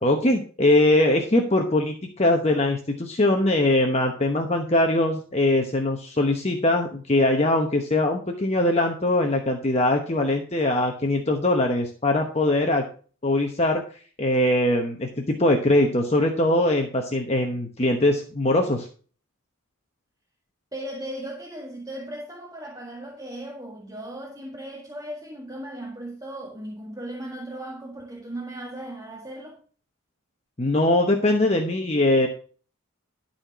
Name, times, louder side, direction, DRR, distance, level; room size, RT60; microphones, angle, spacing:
voice 1, 0.0-12.8 13.2-13.8 14.2-18.9 30.6-32.3, left 1 dB, 30° left, 1.0 m, -22 dB
voice 2, 20.7-29.6, right 1 dB, 15° right, 1.9 m, -37 dB
12.0 x 4.3 x 6.0 m
head